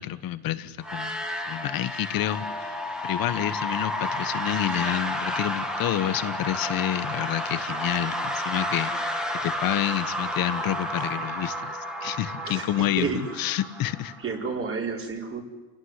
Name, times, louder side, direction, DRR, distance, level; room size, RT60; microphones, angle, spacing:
voice 1, 0.0-14.1, left 12 dB, 45° left, 12 dB, 1.5 m, -29 dB
sound 1, 0.8-14.5, equal, ahead, 2.5 m, -31 dB
voice 2, 14.2-15.4, right 5 dB, 25° right, 1 dB, 5.0 m, -30 dB
28.0 x 18.0 x 9.9 m, 1.3 s
supercardioid pair, 125°, 48 cm